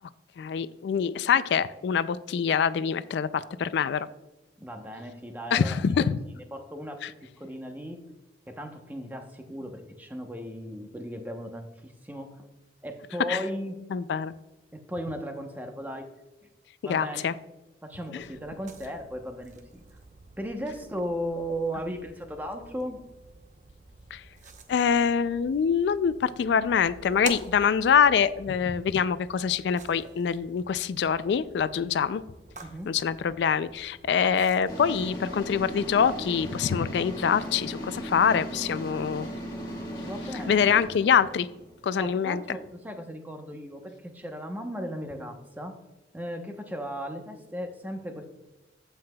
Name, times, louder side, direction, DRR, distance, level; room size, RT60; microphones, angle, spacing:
voice 1, 0.4-4.1 5.5-6.2 7.0-7.1 13.3-13.4 13.9-14.3 16.9-17.3 18.1-18.2 24.1-24.2 24.7-32.2 32.9-39.3 40.5-41.5 41.8-42.4, left 7 dB, 70° left, 15 dB, 0.3 m, -25 dB
voice 2, 4.6-6.1 6.3-7.1 7.4-8.0 8.5-12.5 12.8-13.8 14.7-16.1 16.4-16.5 16.8-17.3 17.8-19.8 20.4-23.0 32.6-32.9 35.5-35.6 40.0-40.6 42.0-45.8 46.1-48.3, equal, 10° right, 4 dB, 0.8 m, -36 dB
sound 1, 18.2-36.3, right 4 dB, 40° right, 0.9 m, -48 dB
sound 2, 34.7-42.6, equal, 25° left, 1.6 m, -37 dB
15.0 x 5.7 x 2.3 m, 1.0 s
head